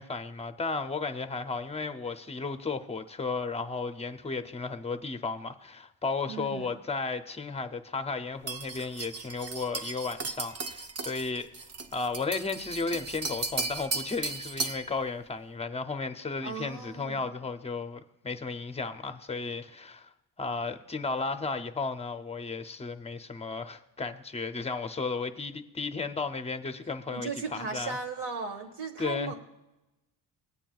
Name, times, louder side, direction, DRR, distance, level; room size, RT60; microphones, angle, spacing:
voice 1, 0.0-11.5 11.9-20.1 20.4-28.0 29.0-29.3, left 4 dB, 15° left, 0.4 m, -34 dB
voice 2, 6.3-6.8 16.4-17.3 27.1-29.3, right 4 dB, 85° right, 1.6 m, -36 dB
sound 1, 8.5-14.9, right 3 dB, 40° right, 0.6 m, -36 dB
18.5 x 9.0 x 2.3 m
wide cardioid pair, 145°, 41 cm